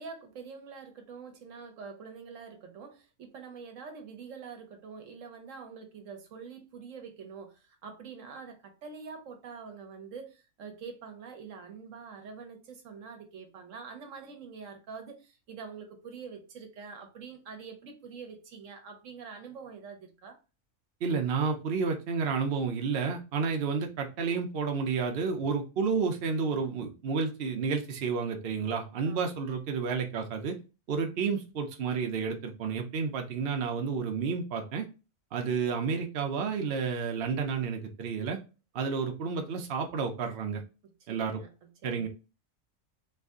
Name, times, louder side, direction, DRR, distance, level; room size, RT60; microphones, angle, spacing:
voice 1, 0.0-20.4 29.0-29.3 40.8-42.1, right 5 dB, 70° right, 1.1 m, -45 dB
voice 2, 21.0-30.5 30.9-34.9 35.3-38.4 38.7-40.6 41.1-41.4 41.8-42.1, right 5 dB, 55° right, 0.8 m, -31 dB
3.2 x 2.6 x 3.5 m
omnidirectional pair, 1.4 m